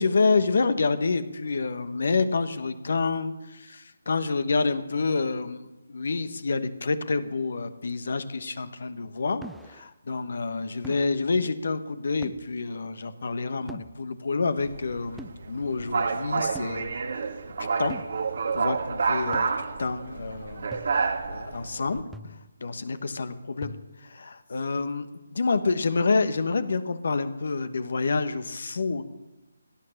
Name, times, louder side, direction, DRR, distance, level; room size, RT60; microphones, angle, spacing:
voice 1, 0.0-16.9 17.6-18.0 18.3-19.5 19.8-20.7 21.3-25.1 25.3-29.0, left 4 dB, 60° left, 12 dB, 1.3 m, -28 dB
sound 1, 9.4-9.9 10.8-11.1 12.2-12.5 13.7-14.0 15.2-15.4 16.5-16.8 17.9-18.2 19.3-19.5 20.7-21.1 22.1-22.5 23.6-24.0, right 1 dB, ahead, 0.4 m, -43 dB
sound 2, 14.6-22.0, right 5 dB, 55° right, 1.5 m, -29 dB
17.5 x 11.0 x 6.6 m, 1.0 s
figure-of-eight pair, 150°, 0 cm